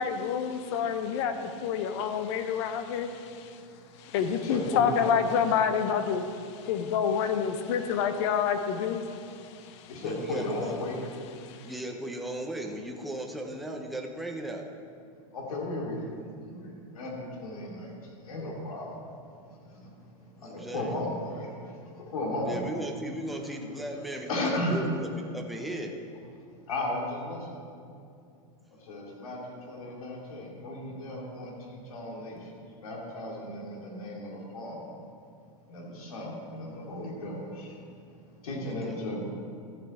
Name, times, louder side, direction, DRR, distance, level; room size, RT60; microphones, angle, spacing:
voice 1, 0.0-3.6 4.0-9.9 11.3-11.7, left 7 dB, 55° left, 9 dB, 0.9 m, -28 dB
voice 2, 4.4-5.1 9.9-11.0 15.3-16.0 16.4-17.9 18.3-18.9 20.4-21.5 22.1-22.7 24.3-24.8 26.7-27.4 28.9-29.4 29.7-32.4 32.8-34.8 35.7-37.7 38.4-39.2, left 1 dB, 85° left, -2 dB, 2.7 m, -34 dB
voice 3, 10.0-10.8 11.6-14.7 20.4-21.0 22.4-25.9 38.6-39.0, right 1 dB, ahead, 1 dB, 0.7 m, -37 dB
14.0 x 8.0 x 4.3 m, 2.4 s
supercardioid pair, 140°, 18 cm